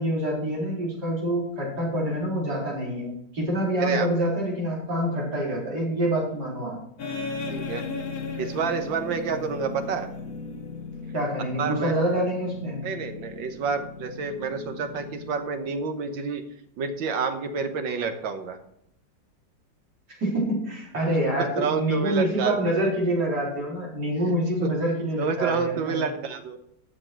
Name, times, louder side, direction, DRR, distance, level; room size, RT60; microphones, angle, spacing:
voice 1, 0.0-6.8 11.1-12.8 20.2-26.0, right 1 dB, 60° right, -5 dB, 4.8 m, -26 dB
voice 2, 3.8-4.2 7.5-7.8 8.4-10.1 11.6-12.0 12.8-16.4 16.8-18.6 21.0-21.2 21.6-22.8 24.3-24.7 25.2-26.6, right 5 dB, 85° right, 7 dB, 1.8 m, -29 dB
sound 1, 7.0-15.9, left 4 dB, 55° left, 1.5 m, -37 dB
14.0 x 6.5 x 4.6 m, 0.75 s
omnidirectional pair, 2.0 m